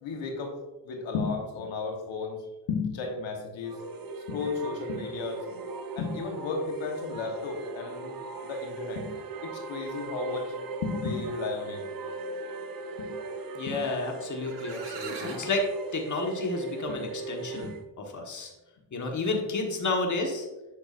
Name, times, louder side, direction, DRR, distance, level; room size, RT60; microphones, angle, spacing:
voice 1, 0.0-0.6 0.8-2.4 2.7-3.7 4.3-5.6 5.9-9.1 9.4-10.5 10.8-11.8 13.0-13.1 13.7-13.8 16.9-17.0 17.5-17.7, left 4 dB, 85° left, 2 dB, 1.3 m, -33 dB
sound 1, 3.6-17.8, right 3 dB, 50° right, 1.0 m, -39 dB
voice 2, 13.5-15.7 15.9-17.7 18.1-18.5 18.9-20.5, left 2 dB, 40° left, 2 dB, 1.4 m, -31 dB
Stable Noises- Birds and Horses Neighing, 14.1-14.2 14.4-15.6, right 4 dB, 65° right, 1.5 m, -40 dB
8.4 x 6.0 x 2.5 m, 1.1 s
cardioid pair, 80°, 45 cm